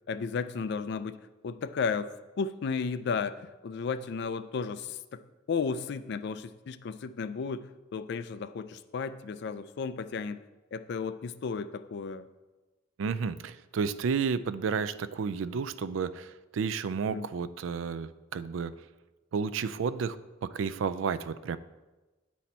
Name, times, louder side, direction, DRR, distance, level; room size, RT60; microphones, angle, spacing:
voice 1, 0.1-1.2 1.4-5.2 5.5-10.4 10.7-12.3 17.1-17.3, left 5 dB, 55° left, 13 dB, 0.3 m, -34 dB
voice 2, 13.0-18.7 19.3-20.2 20.4-21.6, right 6 dB, 70° right, 15 dB, 0.3 m, -31 dB
9.2 x 4.2 x 4.3 m, 1.2 s
head